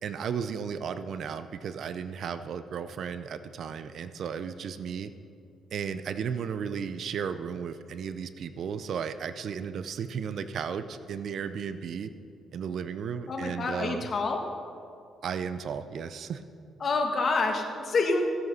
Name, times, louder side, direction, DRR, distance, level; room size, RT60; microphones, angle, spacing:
voice 1, 0.0-5.1 5.7-12.1 12.5-14.1 15.2-16.4, right 7 dB, 65° right, 12 dB, 0.6 m, -34 dB
voice 2, 13.3-14.4 16.8-18.2, left 3 dB, 45° left, 3 dB, 1.7 m, -27 dB
15.5 x 8.0 x 5.5 m, 2.4 s
cardioid pair, 90°, 0 cm